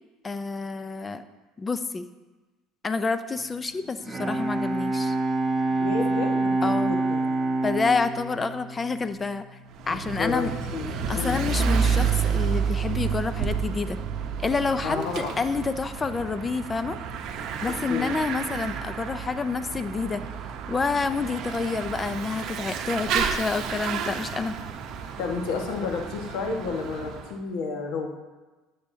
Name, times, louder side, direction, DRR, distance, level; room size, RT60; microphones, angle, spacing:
voice 1, 0.2-1.2 1.6-2.1 2.8-5.2 6.6-6.9 7.6-9.4 9.9-10.5 11.1-14.0 14.4-17.0 17.6-20.2 20.7-24.5, left 4 dB, 20° left, 11 dB, 0.6 m, -28 dB
Bowed string instrument, 3.8-9.6, right 2 dB, 20° right, 1.3 m, -27 dB
voice 2, 5.8-7.3 9.8-10.4 10.7-11.4 14.8-15.3 17.9-18.1 25.2-28.1, left 4 dB, 75° left, 1 dB, 1.6 m, -31 dB
Bicycle / Mechanisms, 9.7-27.3, right 6 dB, 60° right, 0.9 m, -30 dB
13.0 x 7.8 x 2.8 m, 1.2 s
supercardioid pair, 110°, 0 cm